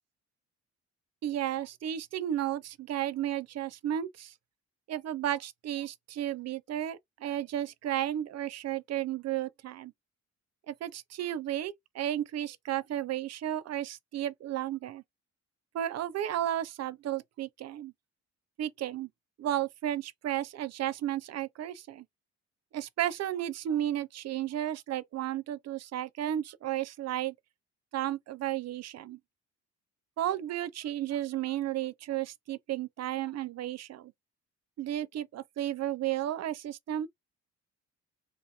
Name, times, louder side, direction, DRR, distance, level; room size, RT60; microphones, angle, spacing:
voice 1, 1.2-4.3 4.9-9.9 10.7-15.0 15.7-17.9 18.6-19.1 19.4-22.1 22.7-27.3 27.9-29.2 30.2-34.1 34.8-37.1, right 12 dB, 60° right, 0.5 m, -33 dB
2.6 x 2.6 x 4.2 m
cardioid pair, 90°, 30 cm